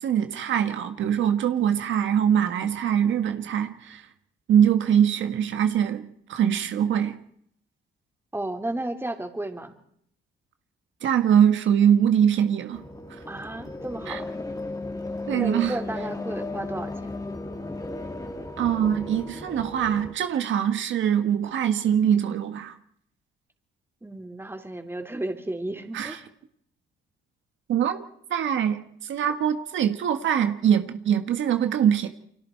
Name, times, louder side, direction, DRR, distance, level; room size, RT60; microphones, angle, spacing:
voice 1, 0.0-4.0 4.5-7.2 11.0-12.8 14.1-14.2 15.3-15.8 18.6-22.7 25.9-26.2 27.7-28.0 28.3-32.1, right 9 dB, 75° right, 7 dB, 1.6 m, -23 dB
voice 2, 8.3-9.7 13.3-14.3 15.3-17.1 24.0-26.2, right 1 dB, 10° right, 4 dB, 3.5 m, -33 dB
sound 1, 12.7-20.1, left 2 dB, 20° left, 2.6 m, -35 dB
29.5 x 24.5 x 4.6 m, 0.68 s
cardioid pair, 90°, 20 cm